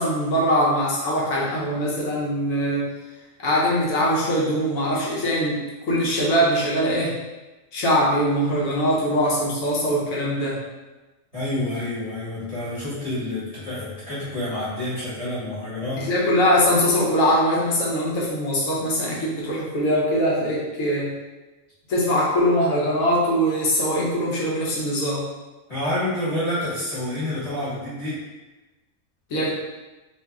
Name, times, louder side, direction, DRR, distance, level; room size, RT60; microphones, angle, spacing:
voice 1, 0.0-2.9 3.4-5.6 5.9-7.2 7.7-10.6 16.0-21.1 21.9-25.3 29.3-29.5, equal, 85° left, -5 dB, 1.3 m, -22 dB
voice 2, 11.3-16.1 25.7-28.2, left 1 dB, 25° left, -11 dB, 1.5 m, -28 dB
2.9 x 2.7 x 3.4 m, 1.1 s
omnidirectional pair, 1.4 m